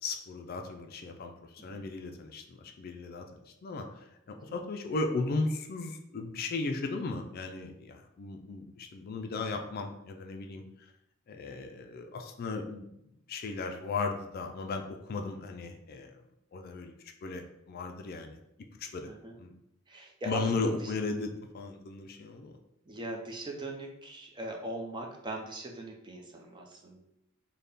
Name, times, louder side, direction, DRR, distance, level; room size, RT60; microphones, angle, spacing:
voice 1, 0.0-3.3 3.6-10.6 11.3-12.9 13.3-16.2 16.5-18.4 18.8-19.1 19.4-19.5 20.3-22.6, left 3 dB, 45° left, 4 dB, 0.4 m, -36 dB
voice 2, 19.9-20.9 22.9-27.0, right 1 dB, 20° right, 1 dB, 0.5 m, -40 dB
4.0 x 2.1 x 3.4 m, 0.80 s
head